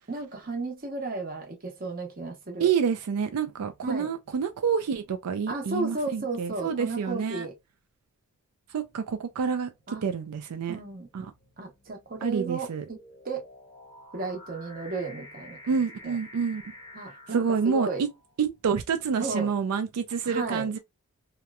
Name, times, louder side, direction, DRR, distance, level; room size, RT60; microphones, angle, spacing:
voice 1, 0.1-2.7 3.8-4.1 5.5-7.6 9.9-10.0 10.7-11.1 11.6-13.0 13.2-13.4 14.1-15.6 16.0-16.2 16.9-18.0 19.2-19.5 20.2-20.8, right 3 dB, 40° right, 0.8 m, -34 dB
voice 2, 2.6-7.5 8.7-10.8 11.1-11.3 12.2-12.8 15.7-16.6 17.3-18.1 18.4-20.8, right 6 dB, 90° right, 0.4 m, -28 dB
sound 1, 8.9-9.3 10.1-18.3, left 1 dB, 15° left, 0.7 m, -50 dB
2.8 x 2.1 x 2.3 m
head